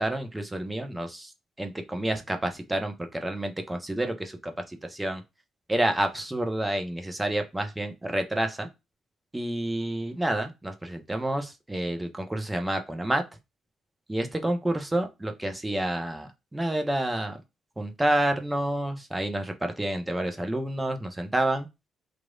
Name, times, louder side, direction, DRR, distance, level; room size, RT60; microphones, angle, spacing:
voice 1, 0.0-1.3 1.6-5.2 5.7-8.7 9.3-13.2 14.1-17.4 17.8-21.7, right 1 dB, 15° right, 6 dB, 0.8 m, -29 dB
3.0 x 2.6 x 2.4 m, 0.23 s
hypercardioid pair, 45°, 0 cm